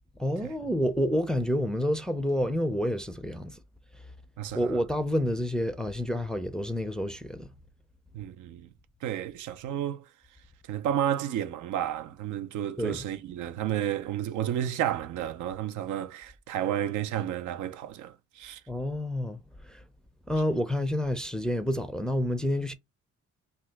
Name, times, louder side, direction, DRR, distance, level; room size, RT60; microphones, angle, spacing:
voice 1, 0.2-3.6 4.5-7.5 12.8-13.1 18.7-19.8 20.3-22.7, equal, ahead, 0.4 m, -29 dB
voice 2, 4.4-4.8 8.1-8.7 9.0-10.0 10.7-18.6, right 11 dB, 80° right, 0.5 m, -31 dB
2.8 x 2.2 x 3.3 m
cardioid pair, 90°, 30 cm